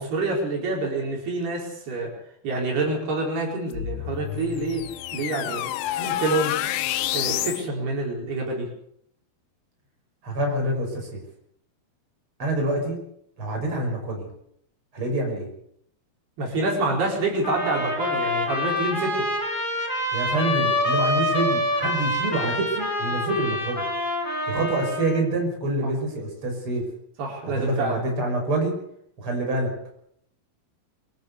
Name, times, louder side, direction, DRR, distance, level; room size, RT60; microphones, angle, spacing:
voice 1, 0.0-2.1 2.4-4.8 5.1-5.7 6.0-6.5 7.1-8.7 16.4-19.3 27.2-28.0, right 2 dB, 85° right, 0 dB, 6.8 m, -27 dB
sound 1, 3.7-7.7, left 13 dB, 85° left, 2.9 m, -29 dB
voice 2, 10.2-11.2 12.4-13.0 13.4-14.3 14.9-15.5 20.1-23.8 24.5-26.8 27.4-28.8 29.2-29.7, right 2 dB, 35° right, 2 dB, 6.8 m, -26 dB
sound 2, 17.4-25.2, left 1 dB, 10° left, 5.0 m, -26 dB
24.0 x 13.5 x 8.3 m, 0.71 s
omnidirectional pair, 4.4 m